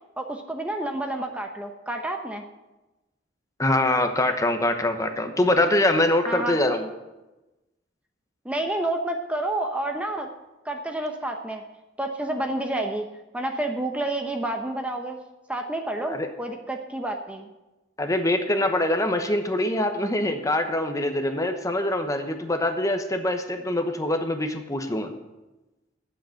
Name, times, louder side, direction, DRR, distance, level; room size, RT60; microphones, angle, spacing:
voice 1, 0.2-2.4 6.3-6.6 8.4-10.3 10.6-11.6 12.0-13.1 13.3-15.2 15.5-17.5, right 1 dB, 5° right, 3 dB, 0.8 m, -29 dB
voice 2, 3.6-6.9 16.1-16.3 18.0-25.1, left 1 dB, 20° left, 6 dB, 1.0 m, -24 dB
8.9 x 7.7 x 8.9 m, 1.0 s
head